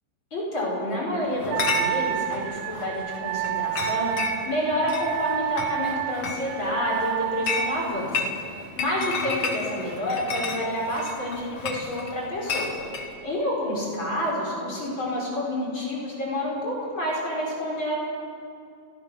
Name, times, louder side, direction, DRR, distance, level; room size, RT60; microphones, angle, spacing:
voice 1, 0.3-4.1 4.4-8.3 8.8-12.8 13.2-17.9, left 1 dB, 25° left, -5 dB, 5.0 m, -28 dB
Chatter / Chink clink, 1.4-13.1, left 4 dB, 90° left, 1.3 m, -33 dB
Wind instrument woodwind instrument, 1.5-7.8, right 14 dB, 85° right, 3.2 m, -30 dB
28.5 x 14.5 x 6.3 m, 2.5 s
omnidirectional pair, 5.8 m